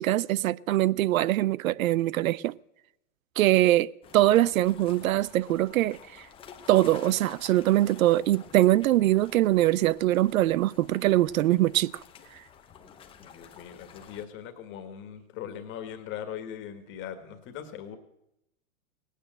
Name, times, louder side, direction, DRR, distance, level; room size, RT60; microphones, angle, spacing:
voice 1, 0.0-2.5 3.4-6.3 6.7-12.0 12.3-12.4, right 15 dB, 80° right, 0.5 m, -23 dB
sound 1, 4.0-14.3, left 7 dB, 15° left, 0.8 m, -50 dB
voice 2, 13.2-18.0, left 9 dB, 30° left, 1.7 m, -40 dB
18.0 x 9.3 x 7.6 m
hypercardioid pair, 150°, 41 cm